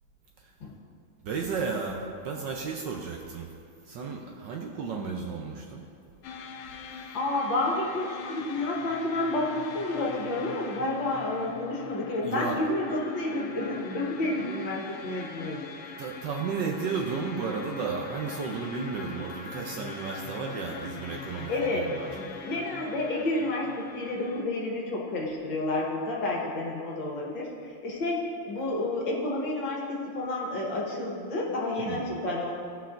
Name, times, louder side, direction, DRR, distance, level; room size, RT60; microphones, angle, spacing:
voice 1, 1.2-3.5 3.9-5.9 12.2-12.6 16.0-22.1 31.8-32.0, right 5 dB, 70° right, 1 dB, 1.2 m, -33 dB
sound 1, 6.2-24.4, left 5 dB, 85° left, 1.5 m, -42 dB
voice 2, 7.1-15.6 21.5-32.5, left 2 dB, 65° left, -3 dB, 1.8 m, -30 dB
16.5 x 5.7 x 2.5 m, 2.3 s
omnidirectional pair, 2.4 m